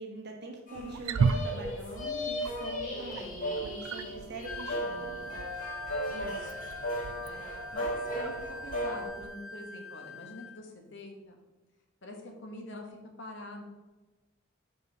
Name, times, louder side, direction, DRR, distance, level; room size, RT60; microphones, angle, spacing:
voice 1, 0.0-5.3, right 2 dB, 55° right, 1 dB, 1.3 m, -44 dB
sound 1, 0.7-9.1, equal, 40° left, 1.8 m, -36 dB
Wild animals, 0.7-9.3, right 5 dB, 85° right, 0.4 m, -37 dB
Wind instrument woodwind instrument, 4.4-10.6, left 2 dB, 85° left, 0.5 m, -44 dB
voice 2, 6.1-6.5 7.2-7.4 7.7-11.4 12.0-13.6, left 2 dB, 60° left, 2 dB, 1.3 m, -45 dB
5.5 x 5.5 x 4.0 m, 1.2 s
head